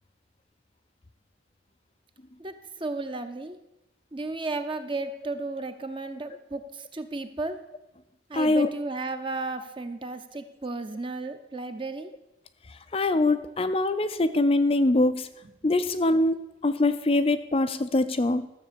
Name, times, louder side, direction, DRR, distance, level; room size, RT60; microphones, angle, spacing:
voice 1, 2.8-3.6 4.1-7.6 8.3-12.1 15.4-15.5, right 3 dB, 25° right, 8 dB, 0.8 m, -34 dB
voice 2, 8.3-8.7 12.7-15.3 15.6-18.5, left 2 dB, 30° left, 10 dB, 0.5 m, -23 dB
13.0 x 7.4 x 6.9 m, 0.94 s
head